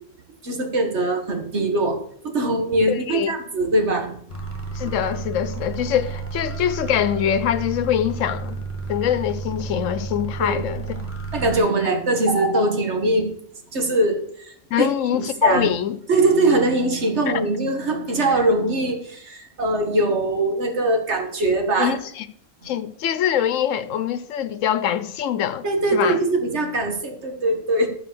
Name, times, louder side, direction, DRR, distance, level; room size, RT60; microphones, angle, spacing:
voice 1, 0.4-2.0 2.2-4.1 10.4-10.6 11.3-13.3 13.7-15.7 16.1-22.0 25.6-27.9, right 2 dB, 60° right, 1.7 m, -22 dB
voice 2, 2.9-3.3 4.7-8.6 8.9-11.0 14.7-16.0 21.8-22.2 22.6-25.6 25.9-26.2, left 9 dB, 80° left, 1.1 m, -23 dB
sound 1, 4.3-11.6, right 4 dB, 10° left, 1.9 m, -31 dB
12.5 x 4.8 x 6.7 m
omnidirectional pair, 1.3 m